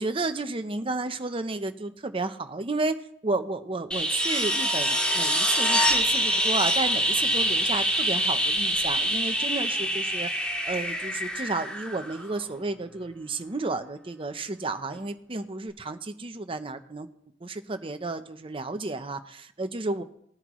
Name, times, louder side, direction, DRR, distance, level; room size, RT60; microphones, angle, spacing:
voice 1, 0.0-10.3 10.7-17.1 17.4-20.0, right 3 dB, 30° right, 8 dB, 0.8 m, -32 dB
sound 1, 3.9-12.6 14.9-15.0, equal, 5° left, 1.9 m, -25 dB
19.0 x 9.8 x 3.1 m, 0.72 s
head